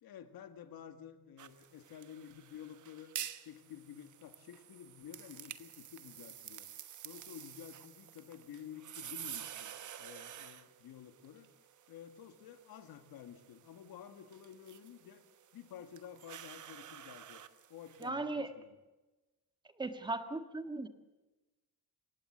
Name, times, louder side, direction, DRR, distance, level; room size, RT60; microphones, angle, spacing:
voice 1, 0.0-3.1 3.4-6.7 7.0-11.5 11.9-15.2 15.5-17.4 17.7-18.8, left 9 dB, 75° left, 8 dB, 2.0 m, -51 dB
sound 1, 1.4-18.1, right 10 dB, 55° right, 1.1 m, -50 dB
voice 2, 18.0-18.5 19.8-20.9, right 2 dB, 10° right, 8 dB, 1.5 m, -37 dB
27.5 x 16.5 x 8.0 m, 1.1 s
wide cardioid pair, 175°, 36 cm